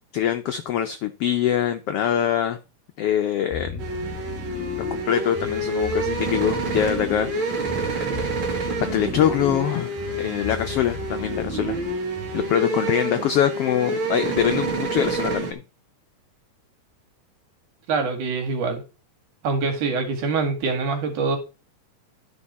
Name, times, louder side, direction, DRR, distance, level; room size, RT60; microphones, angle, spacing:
voice 1, 0.1-2.6 3.0-3.8 4.9-7.3 7.7-8.1 8.9-11.8 12.3-15.6, left 10 dB, 85° left, 1.3 m, -24 dB
sound 1, 3.5-12.7, left 5 dB, 55° left, 0.7 m, -36 dB
sound 2, 3.8-15.5, right 2 dB, 45° right, 2.2 m, -28 dB
voice 2, 17.9-18.8 19.4-21.4, right 4 dB, 75° right, 3.5 m, -24 dB
12.5 x 5.3 x 4.2 m
omnidirectional pair, 3.6 m